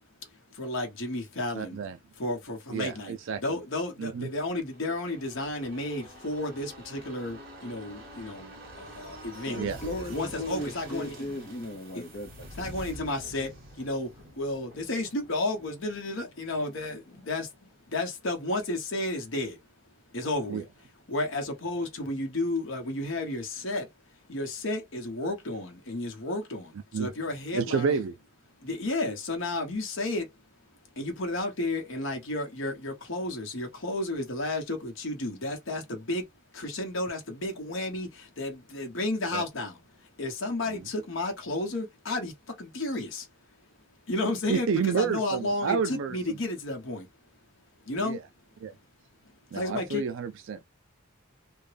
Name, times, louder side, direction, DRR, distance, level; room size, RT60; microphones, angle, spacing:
voice 1, 0.5-1.8 2.2-9.6 10.1-11.2 11.9-12.0 12.6-14.1 14.4-17.5 17.9-19.6 20.1-20.6 21.1-23.9 24.3-28.0 28.6-30.3 31.0-36.3 36.5-39.8 40.2-43.3 44.1-47.1 47.9-48.2 49.5-50.0, left 2 dB, 70° left, 1.1 m, -32 dB
voice 2, 1.5-2.0 2.7-3.4 4.0-4.3 9.6-9.8 20.5-20.6 26.9-27.1 27.5-28.1 39.3-39.4 40.7-40.8 44.5-46.4 48.0-48.2 48.6-48.7 49.5-50.6, right 6 dB, 70° right, 0.4 m, -30 dB
sound 1, 4.6-18.1 18.4-18.5, right 1 dB, 50° right, 1.8 m, -47 dB
voice 3, 9.5-12.5, left 1 dB, 45° left, 0.8 m, -36 dB
3.5 x 2.2 x 3.3 m
head